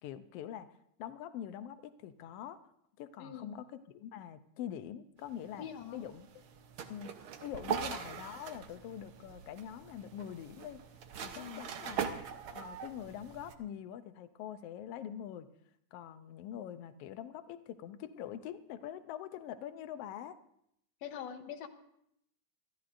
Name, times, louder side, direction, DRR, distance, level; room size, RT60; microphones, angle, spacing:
voice 1, 0.0-0.7 1.0-2.6 3.0-5.7 5.9-6.3 6.9-7.1 7.4-10.8 11.2-12.1 12.5-15.5 15.9-20.4, left 10 dB, 85° left, 11 dB, 1.3 m, -44 dB
voice 2, 3.2-3.5 5.6-6.1 7.7-8.0 11.4-11.6 21.0-21.7, left 9 dB, 65° left, 7 dB, 1.9 m, -44 dB
sound 1, 5.2-13.5, right 7 dB, 85° right, 1.1 m, -42 dB
25.0 x 13.5 x 2.5 m, 0.73 s
omnidirectional pair, 3.5 m